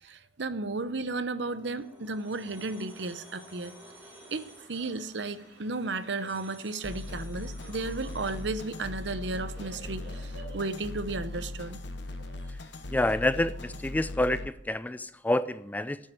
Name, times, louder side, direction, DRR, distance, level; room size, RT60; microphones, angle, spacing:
voice 1, 0.0-3.8 4.3-11.8, right 3 dB, 70° right, 13 dB, 0.8 m, -34 dB
sound 1, 1.3-8.7, right 1 dB, 10° right, 2.9 m, -54 dB
sound 2, 2.9-13.5, right 2 dB, 90° right, 4.9 m, -54 dB
sound 3, 6.8-14.5, left 2 dB, 70° left, 0.9 m, -39 dB
voice 2, 12.9-16.0, left 1 dB, 10° left, 15 dB, 0.3 m, -28 dB
9.4 x 7.7 x 9.0 m, 0.80 s
head